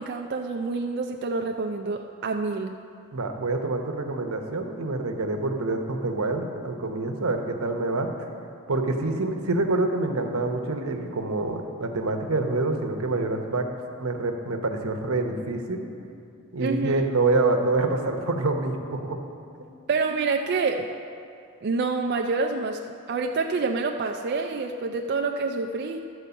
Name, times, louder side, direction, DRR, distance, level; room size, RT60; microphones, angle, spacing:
voice 1, 0.0-2.8 16.6-17.0 19.9-20.9 21.6-22.8 23.1-26.0, right 4 dB, 50° right, 3 dB, 0.4 m, -27 dB
voice 2, 3.1-8.1 8.7-13.7 14.0-15.8 16.5-19.2 19.6-19.7, right 2 dB, 85° right, 4 dB, 0.9 m, -26 dB
12.5 x 4.6 x 6.9 m, 2.5 s
head